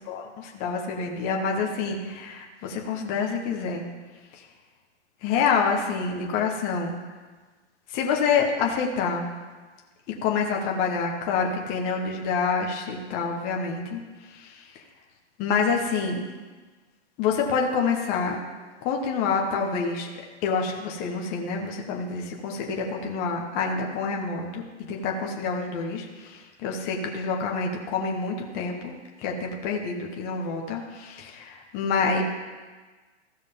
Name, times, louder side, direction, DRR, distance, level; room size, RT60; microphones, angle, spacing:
voice 1, 0.1-3.8 5.2-6.9 7.9-9.2 10.2-14.0 14.3-14.6 15.4-16.2 17.2-18.4 18.8-20.1 20.4-24.6 24.9-28.9 29.2-32.2, left 5 dB, 25° left, 1 dB, 1.3 m, -27 dB
15.5 x 6.3 x 3.6 m, 1.3 s
hypercardioid pair, 150°, 35 cm